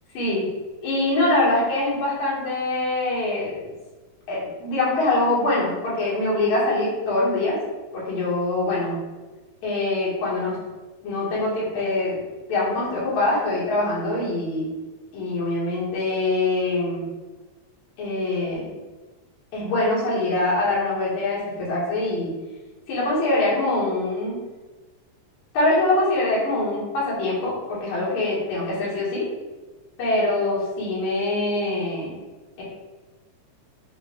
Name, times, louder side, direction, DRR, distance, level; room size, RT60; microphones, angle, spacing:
voice 1, 0.8-3.7 4.3-7.6 7.9-8.9 9.6-10.6 11.0-12.2 12.5-14.7 15.1-17.0 18.0-18.7 19.5-22.3 22.9-24.4 25.5-29.2 30.0-32.1 32.6-32.7, left 2 dB, 75° left, -7 dB, 2.8 m, -24 dB
6.1 x 2.3 x 3.5 m, 1.2 s
omnidirectional pair, 3.4 m